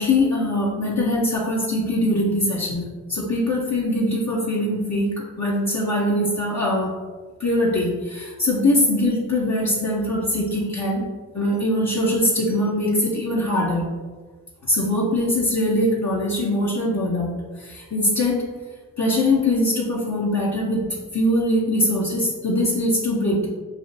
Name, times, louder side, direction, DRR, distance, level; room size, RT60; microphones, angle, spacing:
voice 1, 0.0-6.9 7.4-11.0 11.3-13.9 14.6-18.4 19.0-20.9 21.1-23.5, left 1 dB, 45° left, -5 dB, 0.8 m, -22 dB
5.7 x 2.4 x 2.6 m, 1.4 s
cardioid pair, 40°, 38 cm